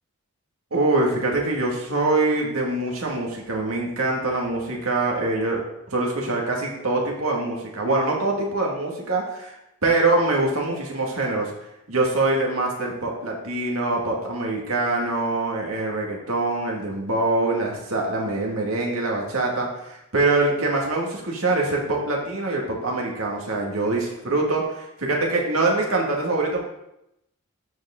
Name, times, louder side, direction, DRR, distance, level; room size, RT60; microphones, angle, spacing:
voice 1, 0.7-5.6 5.9-9.6 9.8-11.5 11.9-26.6, right 2 dB, 70° right, -1 dB, 2.0 m, -24 dB
13.0 x 4.8 x 3.7 m, 0.86 s
head